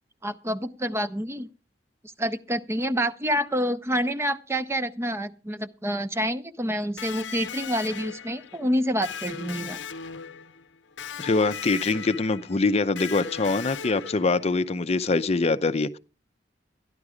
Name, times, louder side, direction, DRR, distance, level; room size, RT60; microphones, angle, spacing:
voice 1, 0.2-1.5 2.2-9.8, equal, 15° right, 0.6 m, -28 dB
Electric guitar, 7.0-14.7, left 7 dB, 85° left, 0.7 m, -38 dB
voice 2, 11.2-16.0, left 3 dB, 35° left, 0.6 m, -24 dB
13.5 x 10.5 x 4.9 m
head